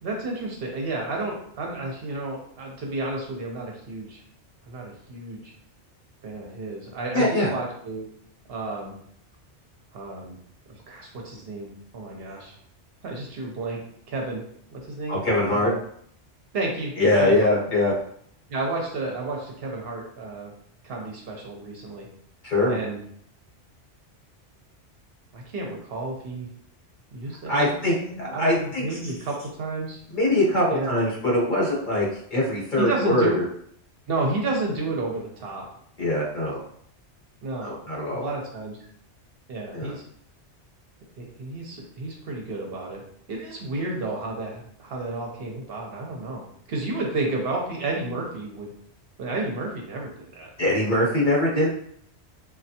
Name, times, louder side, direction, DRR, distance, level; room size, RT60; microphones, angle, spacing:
voice 1, 0.0-4.2 4.7-5.5 6.2-8.1 8.5-8.9 9.9-10.4 10.7-12.6 13.0-13.8 14.1-14.4 14.7-15.2 15.5-15.8 16.5-16.9 17.2-17.5 18.5-20.5 20.8-22.1 22.7-23.0 25.3-26.5 27.1-30.0 30.7-30.9 32.8-33.4 34.1-35.6 37.4-37.8 38.1-38.8 39.5-40.0 41.2-43.0 43.3-48.7 49.2-50.5, right 2 dB, 60° right, -1 dB, 0.8 m, -31 dB
voice 2, 7.1-7.5 15.1-15.7 17.0-17.9 22.4-22.8 27.5-29.1 30.1-33.5 36.0-36.6 37.6-38.3 39.7-40.0 50.6-51.7, left 1 dB, 45° left, -4 dB, 1.0 m, -22 dB
3.2 x 2.3 x 2.7 m, 0.65 s
omnidirectional pair, 1.2 m